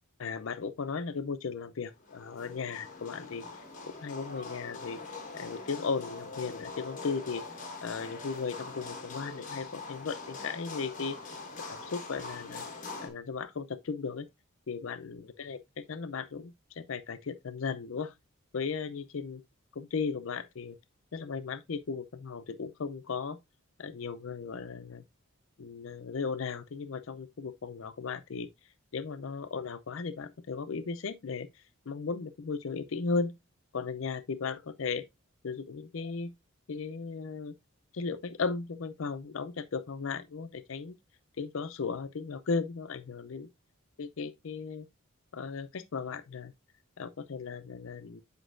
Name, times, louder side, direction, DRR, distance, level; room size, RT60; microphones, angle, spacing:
voice 1, 0.2-3.4 3.9-5.0 5.3-7.4 7.8-11.3 11.7-12.7 13.0-14.3 14.7-18.1 18.5-19.4 19.7-20.8 21.1-23.4 23.8-25.0 25.6-28.5 28.9-31.5 31.9-33.3 33.7-35.0 35.4-36.3 36.7-37.5 37.9-41.0 41.4-43.5 44.0-44.9 45.3-46.5 47.0-48.2, left 5 dB, 65° left, 0.5 m, -36 dB
sound 1, 2.0-13.1, left 3 dB, 35° left, 1.4 m, -43 dB
8.1 x 5.1 x 2.5 m
head